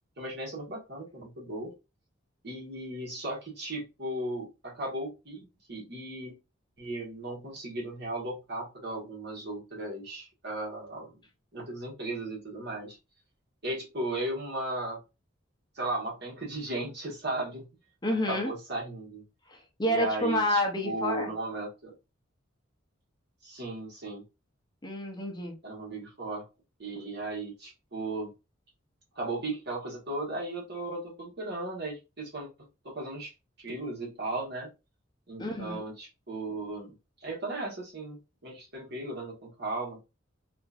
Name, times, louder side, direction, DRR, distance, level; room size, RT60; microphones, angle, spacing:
voice 1, 0.2-1.7 2.4-6.3 6.8-11.2 11.5-13.0 13.6-15.0 15.7-17.7 18.3-19.2 19.8-21.9 23.4-24.2 25.6-26.4 26.8-28.3 29.1-33.3 33.6-34.7 35.3-36.9 37.2-40.0, right 2 dB, 55° right, -3 dB, 1.3 m, -36 dB
voice 2, 18.0-18.5 19.5-21.3 24.8-25.6 35.4-35.8, left 1 dB, 20° left, 1 dB, 0.6 m, -29 dB
2.8 x 2.5 x 2.4 m, 0.27 s
head